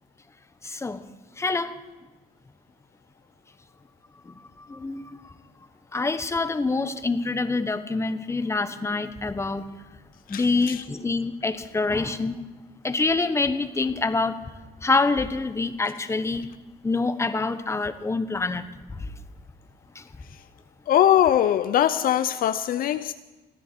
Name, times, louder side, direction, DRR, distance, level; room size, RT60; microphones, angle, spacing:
voice 1, 0.6-1.0 1.4-1.7 4.3-4.4 4.7-5.0 5.9-9.6 10.3-12.4 12.8-14.4 14.8-16.5 16.8-18.6, left 3 dB, 15° left, 1.1 m, -26 dB
voice 2, 10.3-10.8 20.9-23.1, left 11 dB, 60° left, 0.5 m, -21 dB
29.0 x 10.5 x 4.5 m
cardioid pair, 110°, 17 cm